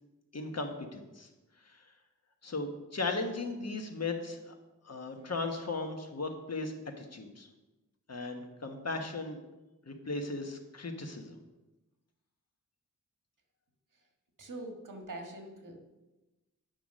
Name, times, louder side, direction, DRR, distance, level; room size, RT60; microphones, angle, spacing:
voice 1, 0.3-1.3 2.4-4.5 4.8-7.5 8.1-9.4 9.9-11.4, left 3 dB, 55° left, 4 dB, 1.3 m, -37 dB
voice 2, 14.4-15.8, right 2 dB, 80° right, 2 dB, 1.8 m, -43 dB
9.1 x 5.7 x 6.4 m, 1.1 s
wide cardioid pair, 95°, 31 cm